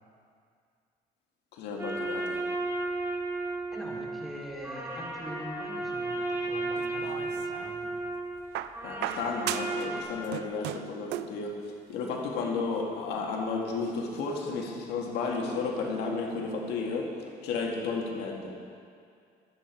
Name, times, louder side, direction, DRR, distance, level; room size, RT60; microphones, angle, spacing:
voice 1, 1.5-2.4 8.8-11.6 11.9-17.1 17.4-18.6, left 4 dB, 85° left, 0 dB, 2.1 m, -33 dB
sound 1, 1.8-10.0, right 2 dB, 15° right, 3.5 m, -34 dB
voice 2, 3.7-8.0, equal, ahead, -4 dB, 3.2 m, -43 dB
sound 2, 6.8-7.8 8.5-9.9 10.2-11.4 12.5-12.6, right 13 dB, 85° right, 0.5 m, -36 dB
23.0 x 8.7 x 4.6 m, 2.3 s
cardioid pair, 110°, 17 cm